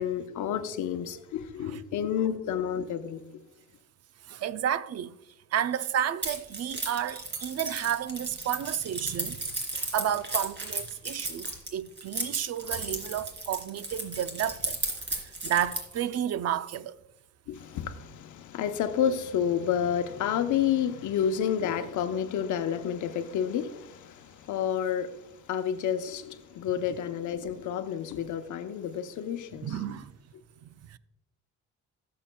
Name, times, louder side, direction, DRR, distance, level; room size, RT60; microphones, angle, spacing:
voice 1, 0.0-3.2 17.5-25.1 25.5-29.8, left 8 dB, 80° left, 0.9 m, -30 dB
voice 2, 4.3-5.2 5.5-9.5 9.9-14.8 15.1-17.0 29.6-30.1 30.6-31.0, right 10 dB, 55° right, 0.5 m, -31 dB
Keys jangling, 6.2-16.0, right 2 dB, 35° right, 3.0 m, -34 dB
17.0 x 7.5 x 2.3 m
cardioid pair, 90°, 30 cm